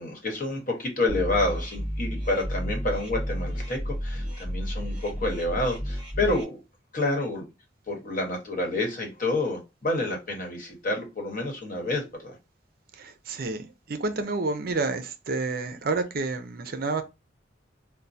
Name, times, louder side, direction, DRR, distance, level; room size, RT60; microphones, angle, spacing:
voice 1, 0.0-6.6 6.9-7.4 7.9-12.4, left 2 dB, 45° left, 1.2 m, -29 dB
sound 1, 1.1-6.4, equal, 10° right, 2.1 m, -32 dB
voice 2, 12.9-17.0, right 3 dB, 50° right, 0.5 m, -29 dB
4.3 x 2.1 x 2.6 m
head